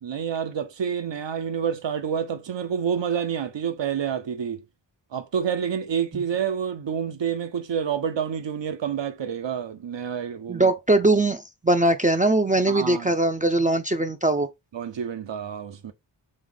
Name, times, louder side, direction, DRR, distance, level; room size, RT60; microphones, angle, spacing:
voice 1, 0.0-4.6 5.1-10.7 12.7-13.1 14.7-15.9, right 7 dB, 75° right, 0.8 m, -28 dB
voice 2, 10.5-14.5, right 2 dB, 20° right, 0.5 m, -21 dB
3.6 x 3.2 x 3.8 m
wide cardioid pair, 50°, 44 cm